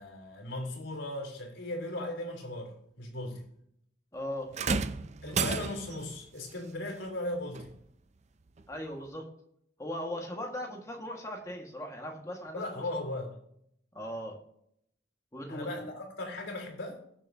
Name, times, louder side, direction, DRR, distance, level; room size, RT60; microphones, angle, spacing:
voice 1, 0.0-3.4 5.2-7.7 12.5-13.4 15.5-17.0, left 1 dB, 85° left, -1 dB, 3.3 m, -37 dB
voice 2, 4.1-4.5 8.7-9.3 9.8-12.7 14.0-14.4 15.3-15.9, left 1 dB, 15° left, 1 dB, 1.7 m, -38 dB
sound 1, 4.5-6.1 7.5-7.7 8.6-8.7, right 5 dB, 35° right, 0.5 m, -31 dB
20.0 x 7.1 x 2.8 m, 0.72 s
head